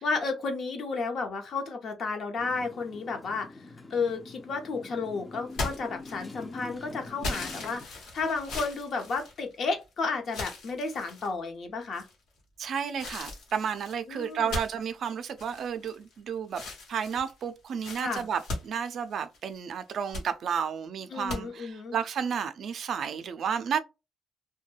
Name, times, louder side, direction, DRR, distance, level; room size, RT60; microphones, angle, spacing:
voice 1, 0.0-12.1 14.1-14.5 18.0-18.2 21.1-22.0, left 4 dB, 60° left, 0.7 m, -32 dB
Motorcycle, 2.4-7.9, left 2 dB, 20° left, 0.4 m, -45 dB
sound 1, 5.5-6.5 7.2-9.8 10.3-11.3 11.9-12.4 13.0-16.2 16.5-19.5 19.9-20.3 21.3-21.4, left 2 dB, 80° left, 1.1 m, -38 dB
voice 2, 12.6-16.6 16.9-23.8, right 7 dB, 65° right, 0.3 m, -32 dB
2.2 x 2.2 x 3.2 m
cardioid pair, 90°, 0 cm